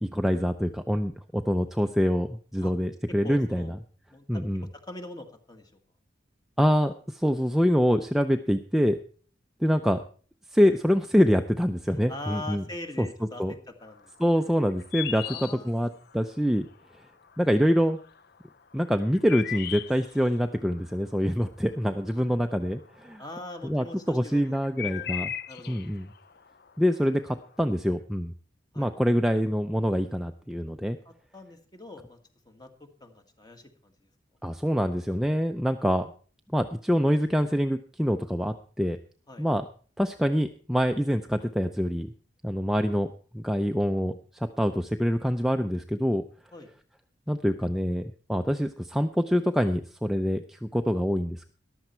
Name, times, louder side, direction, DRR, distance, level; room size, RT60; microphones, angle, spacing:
voice 1, 0.0-3.7 4.3-4.7 6.6-9.0 9.6-10.0 10.5-12.6 13.0-13.1 13.4-13.5 14.2-15.9 16.1-16.7 17.4-18.0 18.7-23.2 23.6-25.3 25.7-26.1 26.8-28.3 28.8-31.0 34.4-36.1 36.5-39.0 39.4-39.6 40.0-42.1 42.4-43.1 43.3-46.2 47.3-48.0 48.3-51.5, equal, ahead, 6 dB, 0.5 m, -25 dB
voice 2, 3.2-3.8 4.1-5.8 11.9-14.1 14.4-14.5 15.2-15.9 23.2-24.6 24.8-25.1 25.5-25.8 28.7-28.9 31.1-32.2 32.5-34.1 39.3-39.5 46.5-46.7, left 2 dB, 20° left, 6 dB, 1.7 m, -43 dB
sound 1, 13.9-16.5 16.8-17.6 17.9-23.0 23.3-27.6, left 11 dB, 55° left, 0.5 m, -38 dB
14.0 x 12.0 x 4.4 m, 0.43 s
head